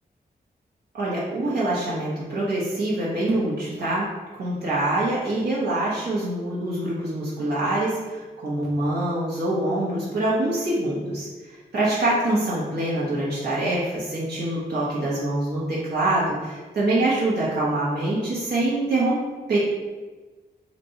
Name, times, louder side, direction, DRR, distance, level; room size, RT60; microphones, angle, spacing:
voice 1, 0.9-4.1 4.4-11.3 11.7-19.2 19.5-19.6, right 1 dB, 80° right, -8 dB, 1.2 m, -25 dB
4.2 x 2.6 x 4.3 m, 1.3 s
wide cardioid pair, 85°, 17 cm